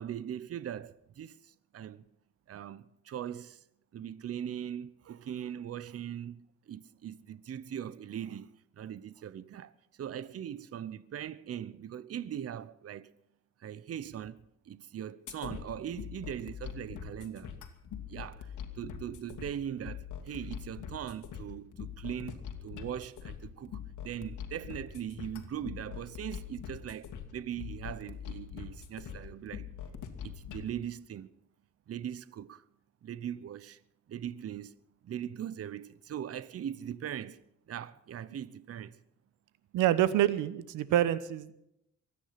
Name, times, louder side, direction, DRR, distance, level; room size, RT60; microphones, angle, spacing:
voice 1, 0.0-2.0 2.5-3.6 3.9-9.7 10.0-13.1 13.6-17.6 18.1-29.7 30.2-31.3 31.9-32.6 33.0-33.8 34.1-34.8 35.0-37.4 37.7-39.0, right 9 dB, 50° right, 0.9 m, -40 dB
sound 1, 15.3-30.7, left 8 dB, 75° left, 2.3 m, -43 dB
voice 2, 39.7-41.5, right 12 dB, 90° right, 1.0 m, -27 dB
23.5 x 9.9 x 5.9 m
cardioid pair, 90°, 30 cm